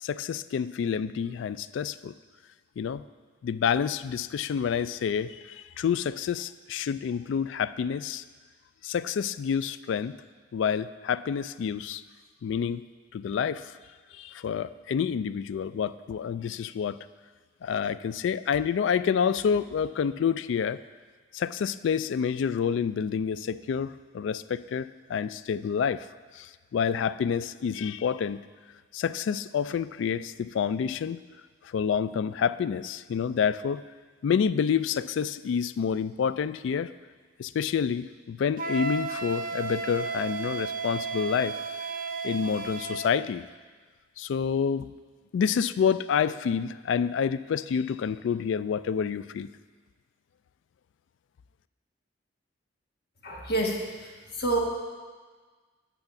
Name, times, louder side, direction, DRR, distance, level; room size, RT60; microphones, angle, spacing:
voice 1, 0.0-2.1 2.8-3.0 3.4-8.2 8.8-10.2 10.5-12.0 12.4-12.8 13.1-13.7 14.1-17.0 17.6-20.8 21.3-26.0 26.4-28.4 28.9-31.2 31.7-33.8 34.2-36.9 37.4-41.6 42.2-43.5 44.2-44.9 45.3-49.5, left 7 dB, 80° left, 15 dB, 0.3 m, -28 dB
Wind instrument woodwind instrument, 38.6-43.1, right 4 dB, 50° right, 0.6 m, -33 dB
voice 2, 53.2-54.6, right 2 dB, 55° left, -1 dB, 1.5 m, -29 dB
9.1 x 5.8 x 7.0 m, 1.5 s
head